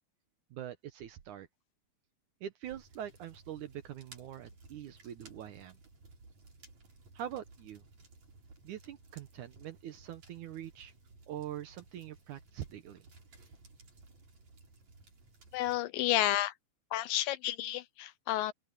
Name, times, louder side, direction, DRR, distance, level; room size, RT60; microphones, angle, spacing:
voice 1, 0.5-1.5 2.4-5.8 7.2-7.8 8.6-10.9 11.3-13.0, right 11 dB, 70° right, 2.1 m, -44 dB
sound 1, 2.6-15.8, right 3 dB, 45° right, 6.4 m, -58 dB
voice 2, 15.5-16.5 16.9-18.5, left 14 dB, 80° left, 2.2 m, -31 dB
open air
omnidirectional pair, 4.3 m